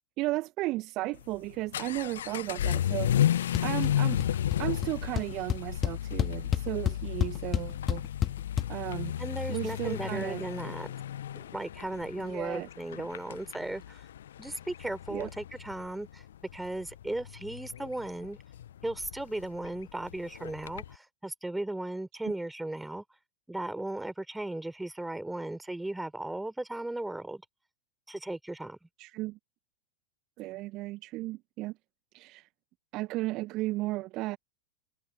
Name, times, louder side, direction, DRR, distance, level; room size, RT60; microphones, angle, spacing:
voice 1, 0.2-3.1 3.6-4.2 4.6-8.0 8.7-9.2 9.5-10.7 12.2-12.7 15.1-15.3 22.2-22.3 29.0-29.4 30.4-31.8 32.1-32.5 32.9-34.4, right 19 dB, 40° right, 1.6 m, -34 dB
Vehicle / Accelerating revving vroom, 1.1-20.9, left 11 dB, 65° left, 1.1 m, -33 dB
sound 1, 3.5-3.9 4.2-4.6 4.8-4.9 5.2-8.7, left 9 dB, 30° left, 2.1 m, -29 dB
voice 2, 9.2-10.9 11.4-14.0 14.4-16.2 16.5-18.4 18.8-23.0 23.5-27.4 28.1-28.8, right 1 dB, 5° right, 4.2 m, -36 dB
figure-of-eight pair, 90°, 0 cm